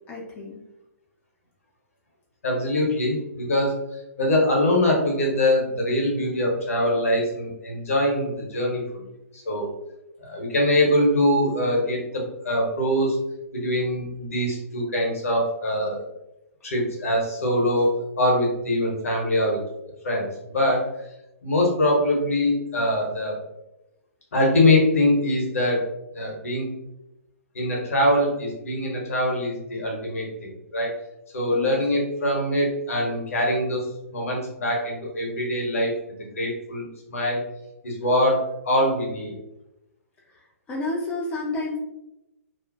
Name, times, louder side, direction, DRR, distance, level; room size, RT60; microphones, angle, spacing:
voice 1, 0.1-0.6 31.5-31.8 40.3-41.8, left 2 dB, 15° left, -3 dB, 0.4 m, -31 dB
voice 2, 2.4-3.8 4.2-9.0 9.3-9.7 10.2-13.2 13.5-16.1 16.6-19.6 20.0-20.8 21.4-23.4 24.3-25.8 26.1-26.7 27.5-30.9 31.3-33.8 34.1-35.9 36.4-36.8 37.1-37.4 37.8-39.3, left 1 dB, 65° left, -1 dB, 0.8 m, -23 dB
2.4 x 2.0 x 2.5 m, 0.90 s
figure-of-eight pair, 120°, 8 cm